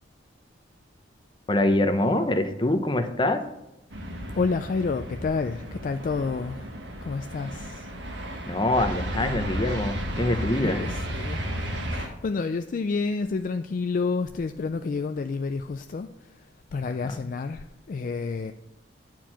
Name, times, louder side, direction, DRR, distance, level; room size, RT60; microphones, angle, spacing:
voice 1, 1.5-3.4 8.5-10.8, left 1 dB, 25° left, 0.7 m, -24 dB
sound 1, 3.9-12.1, equal, 65° right, 1.3 m, -33 dB
voice 2, 4.3-6.7 7.0-7.9 10.6-11.4 11.9-18.5, left 4 dB, 45° left, 0.3 m, -29 dB
9.2 x 4.5 x 7.4 m
head